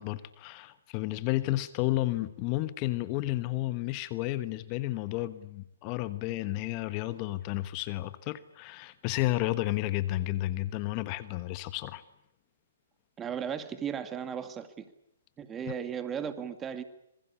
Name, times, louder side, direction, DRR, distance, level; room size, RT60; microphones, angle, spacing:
voice 1, 0.0-12.0, left 17 dB, 35° left, 13 dB, 1.2 m, -32 dB
voice 2, 13.2-14.9 15.4-16.8, right 7 dB, 15° right, 10 dB, 2.1 m, -36 dB
26.5 x 22.0 x 8.5 m, 0.79 s
hypercardioid pair, 140°, 0 cm